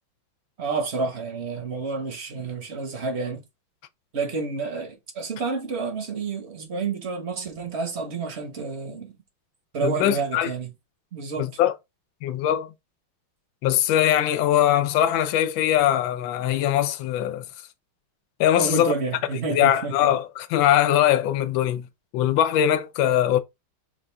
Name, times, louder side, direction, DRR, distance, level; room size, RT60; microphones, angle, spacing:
voice 1, 0.6-3.4 4.1-9.1 9.7-10.7 11.1-11.5 18.6-20.1, right 4 dB, 45° right, 0.9 m, -29 dB
voice 2, 9.8-10.5 11.4-11.7 12.2-12.7 13.6-17.4 18.4-18.9 19.5-21.9 22.1-23.4, left 11 dB, 75° left, 1.4 m, -21 dB
5.7 x 2.5 x 3.4 m
omnidirectional pair, 2.3 m